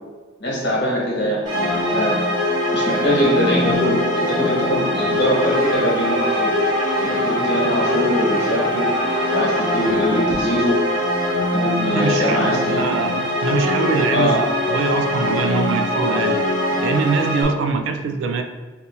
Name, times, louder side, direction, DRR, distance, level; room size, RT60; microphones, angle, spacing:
voice 1, 0.4-2.2 2.7-6.5 7.0-8.9 9.3-10.7 11.5-12.8 14.1-14.5, equal, 60° left, -5 dB, 1.2 m, -22 dB
sound 1, 1.4-17.4, left 1 dB, 20° right, 1.1 m, -22 dB
Bowed string instrument, 6.3-10.6, left 1 dB, ahead, 0.7 m, -34 dB
voice 2, 11.9-16.5 16.8-18.4, right 4 dB, 80° right, 7 dB, 0.3 m, -23 dB
2.8 x 2.7 x 3.5 m, 1.3 s
head